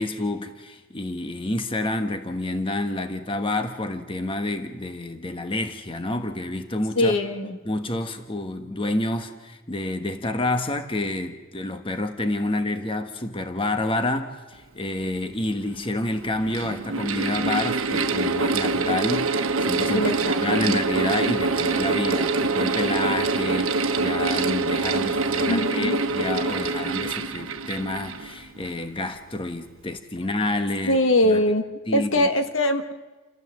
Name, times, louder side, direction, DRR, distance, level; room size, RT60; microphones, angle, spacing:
voice 1, 0.0-7.2 7.6-31.0 31.2-31.4 31.9-32.3, left 2 dB, 25° left, 7 dB, 1.2 m, -28 dB
voice 2, 7.0-7.6 19.9-20.8 25.4-26.0 30.8-31.7 31.9-33.0, left 1 dB, 65° left, 8 dB, 1.4 m, -22 dB
Mechanical fan, 15.2-15.3 16.2-28.8, right 3 dB, 70° right, 1.2 m, -25 dB
29.0 x 14.5 x 7.8 m, 1.2 s
head